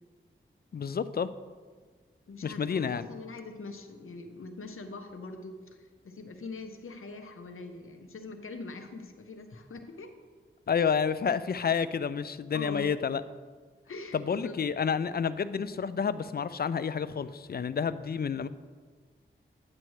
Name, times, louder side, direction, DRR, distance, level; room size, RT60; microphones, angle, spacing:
voice 1, 0.7-1.3 2.4-3.1 10.7-13.2 14.1-18.5, left 6 dB, 45° left, 14 dB, 0.4 m, -29 dB
voice 2, 2.3-10.1 12.5-12.9 13.9-14.6, left 3 dB, 80° left, 6 dB, 0.8 m, -43 dB
9.6 x 7.6 x 3.1 m, 1.5 s
cardioid pair, 45°, 21 cm